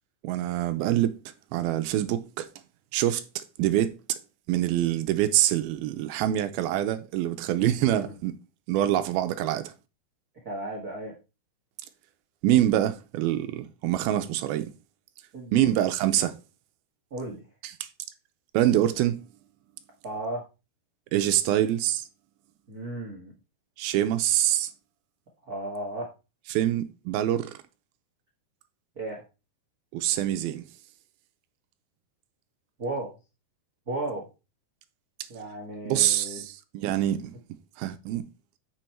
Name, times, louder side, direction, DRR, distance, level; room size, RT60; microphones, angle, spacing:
voice 1, 0.2-1.2 1.5-2.5 2.9-4.2 4.5-8.4 8.7-9.7 12.4-14.7 15.5-16.3 17.8-17.9 18.5-19.3 21.1-22.1 23.8-24.7 26.5-27.6 29.9-30.6 35.9-37.4 37.8-38.3, right 12 dB, 80° right, 2.4 m, -25 dB
voice 2, 10.4-11.1 15.3-15.7 17.1-17.4 20.0-20.4 22.7-23.3 25.4-26.1 28.9-29.2 32.8-33.1 33.9-34.2 35.3-36.4, right 2 dB, 60° right, 0.9 m, -34 dB
7.8 x 6.1 x 4.4 m
omnidirectional pair, 4.6 m